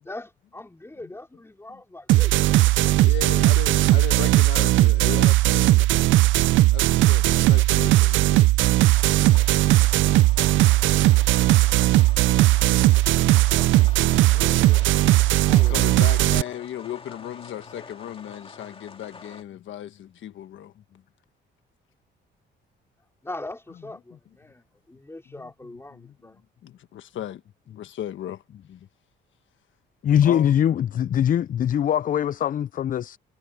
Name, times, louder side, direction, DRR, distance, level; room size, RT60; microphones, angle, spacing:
voice 1, 0.0-3.0 13.5-14.0 14.3-14.9 15.5-16.1 23.2-26.4, left 2 dB, 10° left, 4.5 m, -41 dB
sound 1, 2.1-16.4, right 16 dB, 75° right, 0.4 m, -18 dB
voice 2, 3.0-5.8 6.7-8.5 13.5-14.6 15.5-20.7 26.6-27.4 27.8-28.4 30.2-30.6, left 11 dB, 75° left, 1.4 m, -36 dB
sound 2, 8.9-19.4, left 4 dB, 30° left, 2.3 m, -45 dB
voice 3, 30.0-33.2, left 10 dB, 45° left, 0.4 m, -22 dB
cardioid pair, 90°, 20 cm